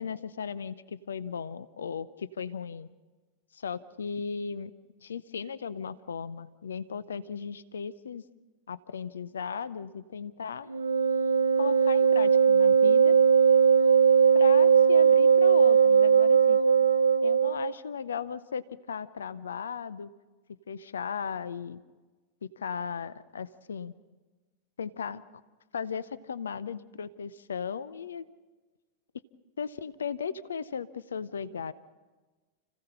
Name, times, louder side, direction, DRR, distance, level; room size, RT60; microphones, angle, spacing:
voice 1, 0.0-2.9 3.5-4.7 5.0-8.2 8.7-10.7 11.5-13.2 14.3-16.6 17.2-20.1 20.7-21.8 22.6-23.9 24.8-25.2 25.7-28.3 29.6-31.7, left 6 dB, 70° left, 18 dB, 0.6 m, -36 dB
Wind instrument woodwind instrument, 10.7-17.7, right 7 dB, 75° right, 0.6 m, -20 dB
29.5 x 16.0 x 5.7 m, 1.3 s
figure-of-eight pair, 90°, 0 cm